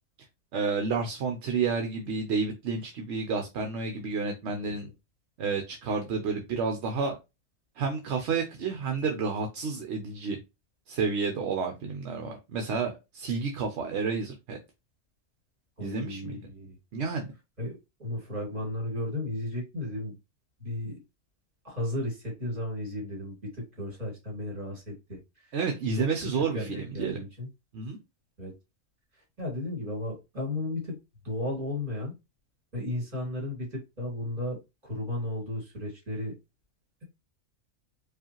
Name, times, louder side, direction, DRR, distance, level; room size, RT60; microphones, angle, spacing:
voice 1, 0.5-4.9 5.4-7.1 7.8-10.4 10.9-14.6 15.8-16.4 16.9-17.3 25.5-27.2 27.7-28.0, right 5 dB, 60° right, 0.8 m, -30 dB
voice 2, 4.5-4.9 15.8-16.8 17.6-20.1 20.6-21.0 21.6-25.6 26.0-27.5 28.4-28.5 29.4-31.0 31.2-32.1 32.7-36.3, left 1 dB, 35° right, 2.5 m, -34 dB
4.8 x 2.4 x 2.9 m
omnidirectional pair, 1.5 m